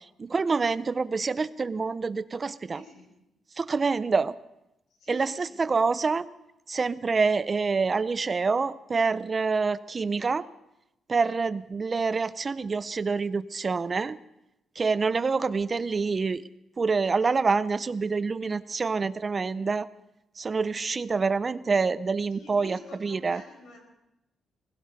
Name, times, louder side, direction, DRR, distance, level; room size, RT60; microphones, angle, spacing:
voice 1, 0.2-2.8 3.6-4.3 5.1-6.3 6.7-10.4 11.1-14.2 14.8-16.4 16.8-19.9 20.4-23.4, right 4 dB, 30° right, 16 dB, 0.5 m, -26 dB
voice 2, 2.7-3.1 5.0-5.7 22.3-23.8, equal, 85° left, 2 dB, 5.6 m, -48 dB
21.5 x 16.5 x 4.0 m, 0.88 s
cardioid pair, 125°, 0 cm